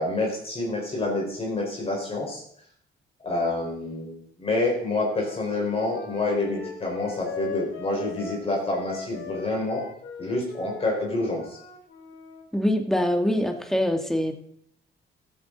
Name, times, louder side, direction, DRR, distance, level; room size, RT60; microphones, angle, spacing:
voice 1, 0.0-2.4 3.2-9.8 10.2-11.6, left 2 dB, 30° left, -1 dB, 4.7 m, -27 dB
Wind instrument woodwind instrument, 5.0-12.4, left 7 dB, 75° left, 2.4 m, -40 dB
voice 2, 12.5-14.3, left 1 dB, ahead, 5 dB, 1.8 m, -24 dB
14.5 x 8.4 x 4.0 m, 0.68 s
cardioid pair, 90°, 20 cm